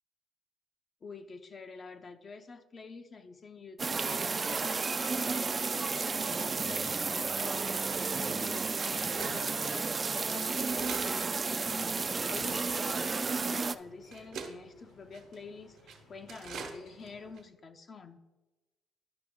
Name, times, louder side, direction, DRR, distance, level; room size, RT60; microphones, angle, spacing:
voice 1, 1.0-18.2, left 4 dB, 45° left, 6 dB, 0.6 m, -48 dB
sound 1, 3.8-13.8, right 4 dB, 35° right, 0.3 m, -32 dB
sound 2, 9.2-17.3, left 2 dB, 85° left, 2.0 m, -58 dB
sound 3, 9.2-9.4 10.1-10.3 10.7-11.1 11.7-11.8 12.4-12.9 13.6-13.7 14.1-14.5 15.1-15.4 15.8-16.0 16.3-16.8 17.1-17.2 17.3-17.4, right 5 dB, 85° right, 1.1 m, -43 dB
10.5 x 5.9 x 3.6 m, 1.1 s
cardioid pair, 90°, 0 cm